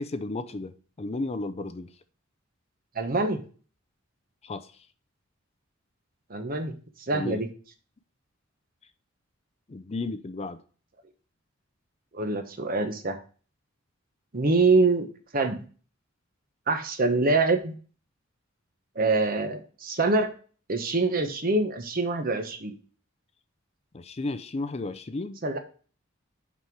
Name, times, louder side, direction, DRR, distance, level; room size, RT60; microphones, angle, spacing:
voice 1, 0.0-1.9 4.4-4.7 7.1-7.4 9.7-10.6 23.9-25.4, left 2 dB, 30° left, 0.5 m, -33 dB
voice 2, 2.9-3.4 6.3-6.7 7.1-7.5 12.1-13.2 14.3-15.1 15.3-15.6 16.7-17.7 18.9-20.3 20.7-22.7 25.4-25.6, right 3 dB, 45° right, 1.0 m, -25 dB
5.9 x 5.8 x 4.6 m
head